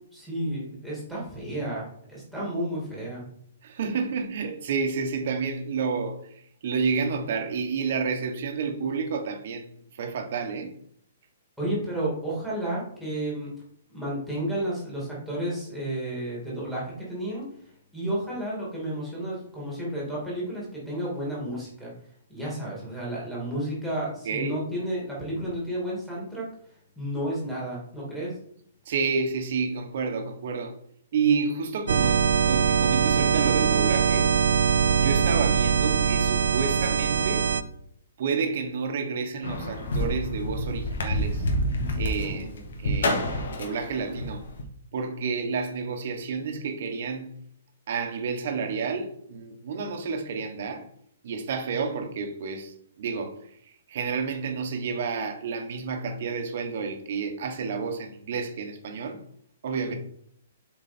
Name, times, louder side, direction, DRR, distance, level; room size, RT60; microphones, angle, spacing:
voice 1, 0.1-3.2 11.6-13.5 13.9-17.5 17.9-21.9 22.3-26.5 27.0-28.4 42.2-42.6 59.9-60.0, right 1 dB, ahead, 2.2 m, -32 dB
voice 2, 3.6-6.2 6.6-10.7 24.2-24.6 28.9-30.7 31.1-34.3 35.0-37.5 38.2-41.5 42.0-42.5 42.8-43.2 43.6-44.4 44.9-47.4 47.9-50.9 51.2-53.4 53.6-59.2 59.6-59.9, right 5 dB, 45° right, 1.2 m, -30 dB
sound 1, 31.9-37.6, right 6 dB, 75° right, 0.6 m, -22 dB
sound 2, 39.4-44.6, left 1 dB, 75° left, 1.7 m, -28 dB
7.5 x 4.6 x 4.4 m
hypercardioid pair, 175°, 0 cm